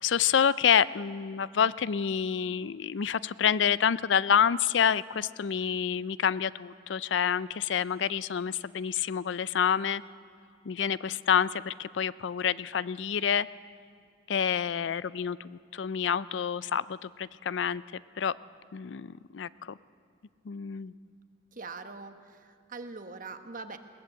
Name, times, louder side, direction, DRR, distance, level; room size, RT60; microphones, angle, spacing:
voice 1, 0.0-10.0 10.7-13.5 14.3-17.8 18.2-18.3 18.7-19.8 20.5-20.9, left 8 dB, 80° left, 18 dB, 0.4 m, -28 dB
voice 2, 21.5-23.8, right 4 dB, 45° right, 8 dB, 1.2 m, -42 dB
21.5 x 18.5 x 8.0 m, 2.2 s
head